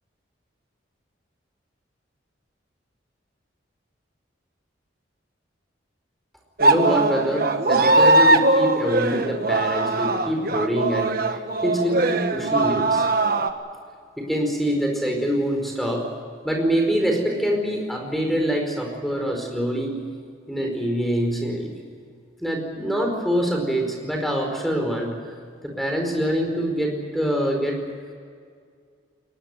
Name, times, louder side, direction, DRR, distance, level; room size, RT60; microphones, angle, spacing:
voice 1, 6.6-13.1 14.2-16.0 16.4-19.9 20.5-21.7 22.4-25.1 25.6-27.8, equal, ahead, 2 dB, 4.8 m, -25 dB
sound 1, 6.6-13.5, right 2 dB, 50° right, 1.5 m, -20 dB
22.0 x 20.5 x 9.2 m, 2.1 s
head